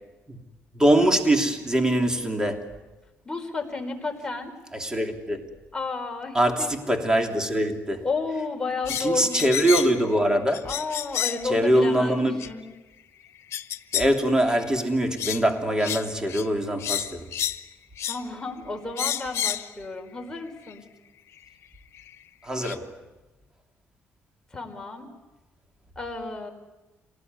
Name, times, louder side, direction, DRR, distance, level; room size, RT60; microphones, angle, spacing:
voice 1, 0.7-2.7 4.7-5.5 6.3-8.0 9.0-10.6 11.4-12.4 13.9-17.3 22.4-22.9, right 1 dB, 15° right, 3.2 m, -23 dB
voice 2, 3.2-4.5 5.7-6.7 8.0-9.5 10.6-12.6 18.0-20.8 24.5-25.1 25.9-26.5, left 3 dB, 15° left, 4.9 m, -32 dB
sound 1, 8.9-10.0 10.5-11.5 12.4-12.5 13.5-14.1 14.5-14.7 15.2-15.4 15.8-16.0 16.3-16.5 16.8-17.6 18.0-18.2 19.0-19.7 20.7-20.8 22.0-22.1 22.6-22.7, left 10 dB, 70° left, 1.3 m, -30 dB
27.5 x 19.0 x 9.6 m
cardioid pair, 105°, 5 cm